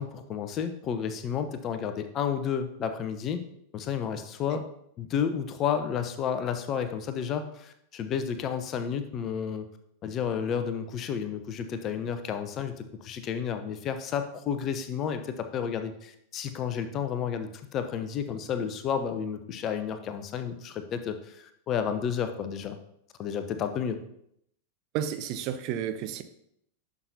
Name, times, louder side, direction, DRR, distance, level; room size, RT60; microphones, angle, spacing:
voice 1, 0.0-3.4 3.7-4.6 5.0-9.7 10.0-22.8 23.2-24.0, left 7 dB, 30° left, 9 dB, 0.8 m, -31 dB
voice 2, 24.9-26.2, right 9 dB, 40° right, 10 dB, 0.6 m, -32 dB
11.0 x 6.0 x 2.7 m, 0.74 s
figure-of-eight pair, 90°, 0 cm